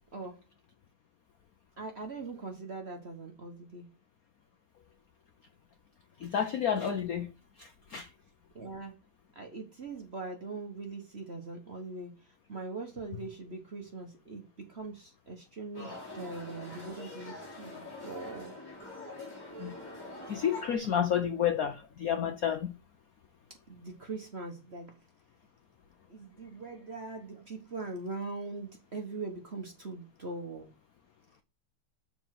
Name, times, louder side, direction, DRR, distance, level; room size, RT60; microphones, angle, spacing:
voice 1, 1.8-3.9 8.5-8.9 9.3-12.1 12.5-18.5 23.7-25.0 26.1-30.7, right 3 dB, 40° right, 1.0 m, -41 dB
voice 2, 6.2-7.3 7.6-8.1 19.6-19.7 20.3-22.7, left 8 dB, 70° left, 0.8 m, -30 dB
sound 1, 15.7-20.8, left 2 dB, 10° left, 3.3 m, -44 dB
6.9 x 4.3 x 5.9 m
omnidirectional pair, 2.4 m